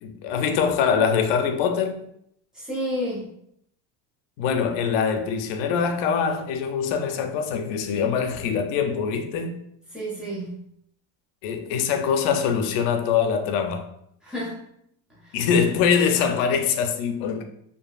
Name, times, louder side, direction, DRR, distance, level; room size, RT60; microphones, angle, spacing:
voice 1, 0.0-2.0 4.4-9.6 11.4-13.9 15.3-17.5, left 6 dB, 85° left, 0.5 m, -23 dB
voice 2, 2.5-3.3 9.9-10.6 14.2-14.6 15.2-15.4, equal, ahead, 0.5 m, -30 dB
2.7 x 2.6 x 2.3 m
cardioid pair, 180°, 39 cm